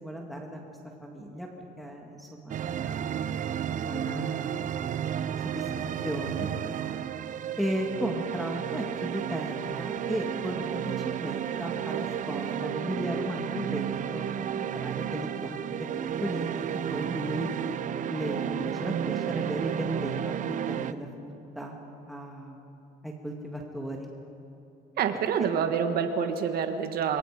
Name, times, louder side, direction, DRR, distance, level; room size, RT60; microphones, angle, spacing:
voice 1, 0.0-1.5 1.8-3.1 3.8-4.7 5.4-5.7 6.0-6.5 7.6-15.9 16.2-17.5 18.1-21.8 22.1-22.8 23.0-24.1, equal, ahead, 0 dB, 2.2 m, -35 dB
sound 1, 2.5-20.9, right 9 dB, 50° right, 0.7 m, -32 dB
voice 2, 25.0-27.2, right 7 dB, 65° right, 7 dB, 1.6 m, -27 dB
26.5 x 22.0 x 5.2 m, 2.8 s
cardioid pair, 110°, 17 cm